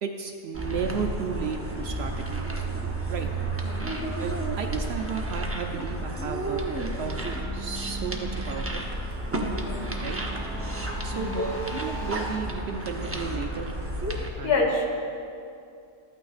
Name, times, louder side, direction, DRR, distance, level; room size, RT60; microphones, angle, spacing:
voice 1, 0.0-2.4 3.1-3.3 4.2-6.6 7.0-7.2 7.5-8.8 10.0-10.2 11.0-13.7 14.3-14.6, right 6 dB, 65° right, 4 dB, 0.7 m, -33 dB
sound 1, 0.5-14.3, right 1 dB, 20° right, 0.4 m, -32 dB
voice 2, 3.6-3.9 9.4-9.9 11.1-11.4 14.4-14.9, left 3 dB, 60° left, -1 dB, 1.5 m, -27 dB
sound 2, 6.2-12.3, right 1 dB, 20° left, 2.4 m, -37 dB
13.0 x 8.8 x 2.4 m, 2.5 s
omnidirectional pair, 1.3 m